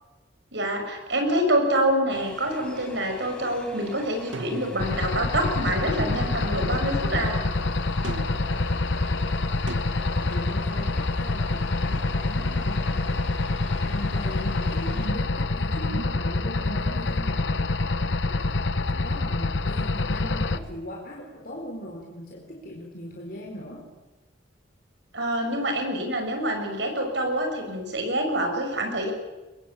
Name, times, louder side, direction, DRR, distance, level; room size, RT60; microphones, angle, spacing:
voice 1, 0.5-7.4 25.1-29.1, right 1 dB, 70° right, 4 dB, 6.5 m, -26 dB
sound 1, 2.1-15.1, left 1 dB, 5° left, 7.0 m, -44 dB
sound 2, 4.3-5.3 8.0-8.7 9.7-9.8, right 2 dB, 90° right, 2.1 m, -36 dB
sound 3, 4.8-20.6, left 2 dB, 75° left, 1.1 m, -26 dB
voice 2, 10.1-13.2 13.7-17.6 18.1-23.9, equal, 50° left, -1 dB, 4.1 m, -39 dB
23.5 x 22.0 x 8.7 m, 1.1 s
head